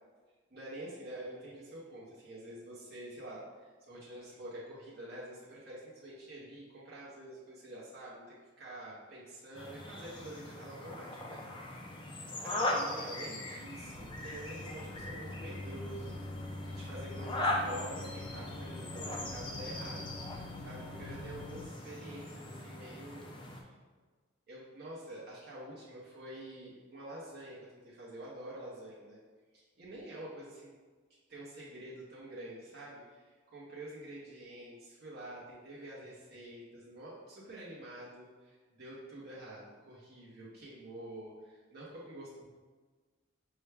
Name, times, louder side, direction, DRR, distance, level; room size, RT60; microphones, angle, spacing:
voice 1, 0.5-11.8 12.4-16.3 16.8-20.0 20.3-23.3 23.6-23.7 24.5-29.2 29.5-30.7 31.3-42.5, right 1 dB, 50° right, -7 dB, 0.7 m, -47 dB
sound 1, 9.5-23.6, left 1 dB, 25° left, 0.4 m, -40 dB
sound 2, 13.6-21.7, left 2 dB, 85° left, 0.5 m, -45 dB
5.5 x 2.2 x 3.3 m, 1.4 s
head